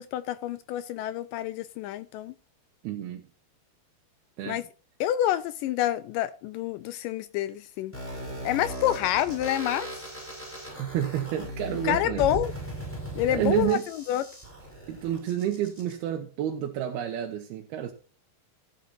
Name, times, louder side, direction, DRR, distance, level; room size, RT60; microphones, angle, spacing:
voice 1, 0.0-2.3 4.4-4.6 5.0-7.9 8.5-9.9 11.8-12.5 13.2-13.8 14.1-14.2, left 13 dB, 85° left, 1.9 m, -27 dB
voice 2, 2.8-3.2 4.4-4.6 10.8-12.3 13.3-13.9 14.9-17.9, right 11 dB, 85° right, 3.1 m, -29 dB
sound 1, 7.9-15.9, right 1 dB, 5° left, 5.5 m, -38 dB
15.5 x 8.6 x 2.7 m
omnidirectional pair, 4.4 m